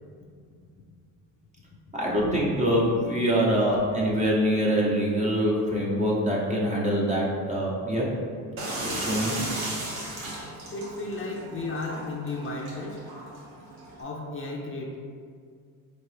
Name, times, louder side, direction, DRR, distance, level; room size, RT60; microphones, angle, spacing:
voice 1, 1.9-8.1 8.8-9.4, equal, 15° right, -4 dB, 0.8 m, -24 dB
sound 1, 8.6-14.0, right 1 dB, 90° right, 1.2 m, -36 dB
voice 2, 10.7-13.0 14.0-15.0, left 2 dB, 30° left, 0 dB, 0.5 m, -34 dB
4.4 x 2.9 x 3.2 m, 2.1 s
cardioid pair, 100°, 41 cm